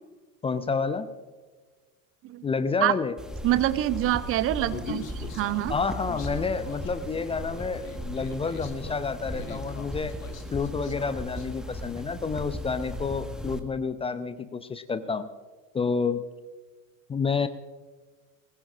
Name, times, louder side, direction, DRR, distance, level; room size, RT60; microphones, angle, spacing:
voice 1, 0.4-1.1 2.4-3.1 5.7-10.1 10.5-15.3 15.7-16.2 17.1-17.5, left 5 dB, 15° left, 12 dB, 0.6 m, -29 dB
sound 1, 3.2-13.6, equal, ahead, 1.4 m, -37 dB
voice 2, 3.4-5.7, right 14 dB, 30° right, 15 dB, 0.6 m, -26 dB
Human voice, 4.7-11.5, left 5 dB, 70° left, 1.6 m, -42 dB
20.5 x 19.5 x 2.5 m, 1.3 s
figure-of-eight pair, 70°, 41 cm